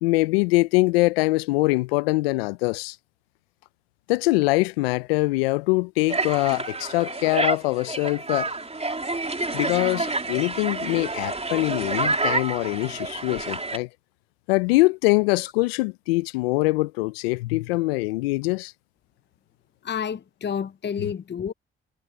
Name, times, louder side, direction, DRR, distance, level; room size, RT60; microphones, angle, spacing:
voice 1, 0.0-3.0 4.1-8.5 9.5-13.9 14.5-18.7 21.0-21.1, left 23 dB, 90° left, 0.6 m, -23 dB
sound 1, 6.1-13.8, right 3 dB, 20° right, 3.4 m, -28 dB
voice 2, 19.8-21.5, left 7 dB, 35° left, 0.8 m, -29 dB
hypercardioid pair, 45°, 29 cm